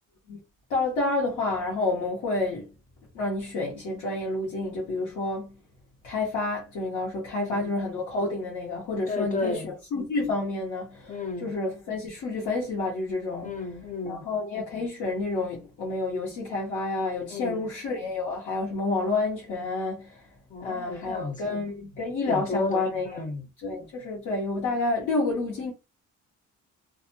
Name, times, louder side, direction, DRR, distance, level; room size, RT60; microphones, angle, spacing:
voice 1, 0.7-2.7 3.1-5.5 6.0-13.6 14.0-20.2 20.6-23.2 23.6-25.7, left 3 dB, 80° left, 1.1 m, -29 dB
voice 2, 7.3-7.7 9.1-9.7 11.1-11.5 13.4-14.3 17.3-17.7 20.5-21.5 22.3-23.5, left 3 dB, 25° left, 0.6 m, -33 dB
2.5 x 2.2 x 2.7 m
cardioid pair, 90°, 30 cm